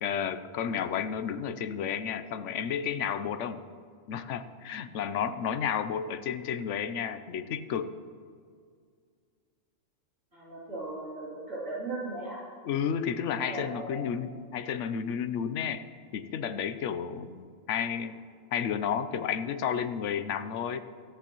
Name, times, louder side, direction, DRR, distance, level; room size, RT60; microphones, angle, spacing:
voice 1, 0.0-3.6 4.1-7.9 12.6-15.8 16.1-18.2 18.5-20.8, left 8 dB, 75° left, 12 dB, 1.0 m, -32 dB
voice 2, 10.3-12.4 13.4-14.0, right 2 dB, 80° right, -9 dB, 3.4 m, -37 dB
24.0 x 9.2 x 3.0 m, 2.1 s
omnidirectional pair, 1.3 m